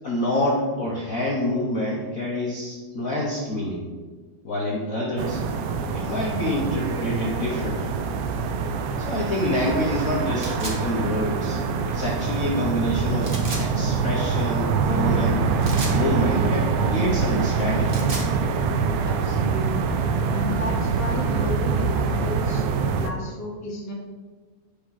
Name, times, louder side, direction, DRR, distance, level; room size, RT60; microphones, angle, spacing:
voice 1, 0.0-3.9 4.4-5.4 5.9-8.0 9.0-11.6 11.9-15.5 15.8-17.9, left 1 dB, 75° left, -4 dB, 0.7 m, -27 dB
sound 1, 5.2-23.1, right 5 dB, 80° right, 1.4 m, -24 dB
sound 2, 10.4-10.8 13.2-13.6 15.6-16.0 17.7-18.3, right 2 dB, 50° right, 0.8 m, -33 dB
voice 2, 19.0-19.9 20.3-23.9, left 2 dB, 10° left, -3 dB, 0.8 m, -33 dB
8.5 x 5.3 x 5.8 m, 1.4 s
omnidirectional pair, 3.5 m